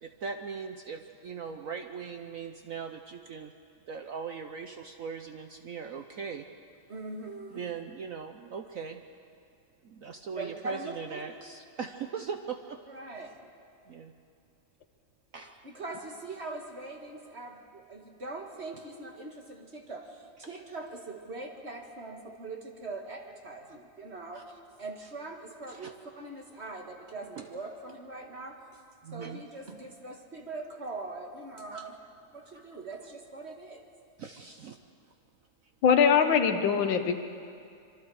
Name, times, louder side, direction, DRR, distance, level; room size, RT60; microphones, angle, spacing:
voice 1, 0.0-3.5 3.9-6.5 7.5-9.0 9.8-12.8 13.9-14.1 15.3-15.7 23.7-23.8 24.3-24.4 25.7-25.9 27.4-27.5 29.0-29.4 31.7-31.9 32.5-32.7 34.2-34.8, right 6 dB, 60° right, 5 dB, 1.0 m, -40 dB
voice 2, 6.9-7.6 10.4-11.2 12.9-13.4 15.6-28.6 29.1-31.9 32.3-33.8, right 3 dB, 35° right, 2 dB, 1.9 m, -42 dB
voice 3, 35.8-37.2, left 7 dB, 85° left, 7 dB, 1.9 m, -22 dB
25.5 x 24.5 x 4.9 m, 2.5 s
omnidirectional pair, 2.0 m